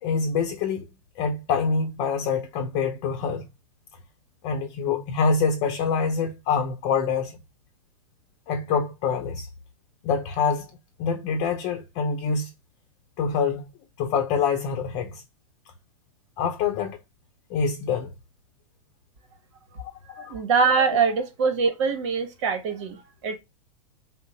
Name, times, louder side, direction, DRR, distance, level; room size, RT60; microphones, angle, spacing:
voice 1, 0.0-0.9 1.2-3.5 4.4-7.3 8.5-9.5 10.0-10.7 11.0-12.5 13.2-13.7 14.0-15.2 16.4-17.0 17.5-18.1 20.1-20.4 20.8-20.9, left 5 dB, 45° left, 0.7 m, -25 dB
voice 2, 20.2-23.4, right 5 dB, 60° right, 1.1 m, -23 dB
3.7 x 2.1 x 4.0 m
hypercardioid pair, 100°, 17 cm